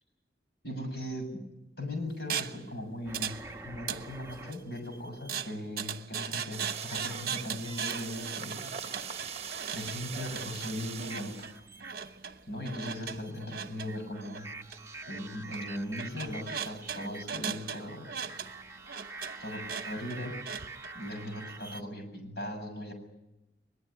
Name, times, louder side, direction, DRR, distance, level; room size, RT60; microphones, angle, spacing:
voice 1, 0.6-1.4 1.8-3.4 3.6-8.7 9.7-11.5 12.5-14.5 15.1-18.1 19.4-20.5 20.9-22.9, left 1 dB, 60° left, 5 dB, 7.3 m, -38 dB
sound 1, 2.3-2.6 3.1-3.4 3.7-4.6 5.3-20.9, right 7 dB, 50° right, 1.1 m, -39 dB
sound 2, 3.1-5.4 7.0-8.3 8.6-9.4 9.8-21.8, right 3 dB, 15° right, 1.2 m, -47 dB
sound 3, 6.5-11.6, right 7 dB, 35° right, 1.3 m, -41 dB
22.0 x 22.0 x 9.9 m, 0.92 s
head